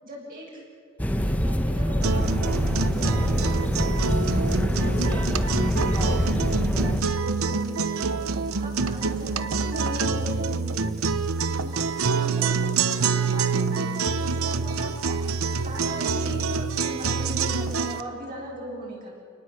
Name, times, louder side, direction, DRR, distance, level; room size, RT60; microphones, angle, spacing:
voice 1, 0.0-0.6 1.2-5.3 5.7-5.9 6.1-11.1 11.6-11.8 12.1-19.1, equal, 45° right, -4 dB, 7.2 m, -39 dB
sound 1, 1.0-7.0, equal, 5° left, 1.0 m, -25 dB
sound 2, 2.0-18.0, right 4 dB, 85° right, 0.9 m, -26 dB
29.0 x 19.5 x 8.0 m, 2.1 s
head